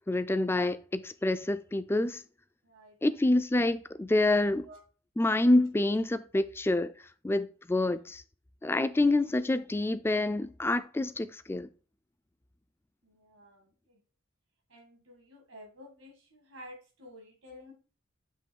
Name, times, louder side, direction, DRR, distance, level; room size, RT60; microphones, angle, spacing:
voice 1, 0.1-2.2 3.0-4.7 5.2-6.9 7.2-8.2 8.6-11.7, left 2 dB, 10° left, 0.3 m, -27 dB
voice 2, 2.6-3.0 4.6-4.8 7.8-8.1 13.0-14.0 14.7-17.7, equal, 80° right, 2.2 m, -52 dB
7.5 x 3.1 x 4.5 m
head